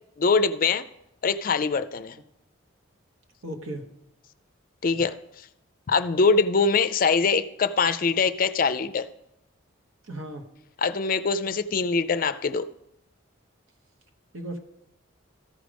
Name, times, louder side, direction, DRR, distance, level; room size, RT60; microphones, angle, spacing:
voice 1, 0.2-0.8 1.2-2.2 4.8-5.2 5.9-9.1 10.8-12.7, left 4 dB, 40° left, 13 dB, 0.4 m, -23 dB
voice 2, 3.4-3.9 10.1-10.5 14.3-14.6, right 1 dB, 80° right, 3 dB, 1.3 m, -35 dB
14.0 x 5.1 x 5.1 m, 0.81 s
head